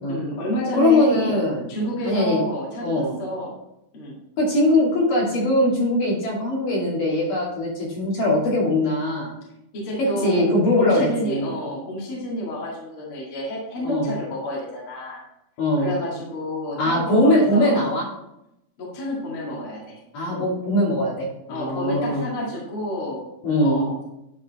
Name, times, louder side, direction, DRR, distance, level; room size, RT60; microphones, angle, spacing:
voice 1, 0.1-1.3 1.7-3.5 3.9-4.2 9.7-15.2 15.8-17.8 18.8-20.0 20.3-20.5 21.5-23.3 23.6-24.0, left 1 dB, 40° left, -5 dB, 2.6 m, -29 dB
voice 2, 0.8-1.7 2.0-2.4 2.8-3.1 4.4-9.4 10.0-11.5 13.8-14.1 15.6-15.9 16.8-18.0 20.1-22.2 23.4-23.8, left 1 dB, 60° left, -5 dB, 3.9 m, -21 dB
10.5 x 4.7 x 4.1 m, 0.85 s
omnidirectional pair, 4.4 m